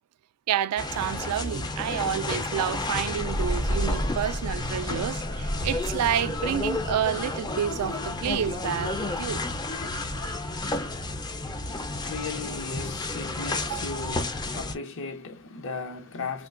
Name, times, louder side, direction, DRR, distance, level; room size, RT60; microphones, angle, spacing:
voice 1, 0.5-9.4 13.7-13.8, right 9 dB, 85° right, 0.3 m, -29 dB
sound 1, 0.8-14.7, left 2 dB, 20° left, 0.4 m, -30 dB
voice 2, 11.6-16.5, left 4 dB, 60° left, 0.8 m, -36 dB
3.6 x 2.5 x 2.4 m
head